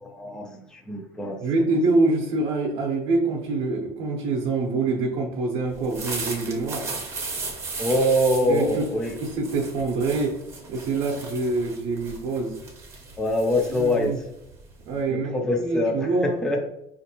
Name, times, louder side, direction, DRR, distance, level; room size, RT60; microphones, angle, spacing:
voice 1, 0.0-1.6 7.8-9.1 13.2-14.1 15.1-16.7, left 1 dB, 5° left, 2 dB, 0.4 m, -24 dB
voice 2, 1.4-6.9 8.5-8.9 9.2-10.4 10.7-12.6 13.7-14.2 14.9-16.4, right 3 dB, 55° right, -1 dB, 0.6 m, -25 dB
sound 1, 5.7-15.0, right 3 dB, 25° right, 0.7 m, -36 dB
5.1 x 2.5 x 2.7 m, 0.86 s
cardioid pair, 165°, 12 cm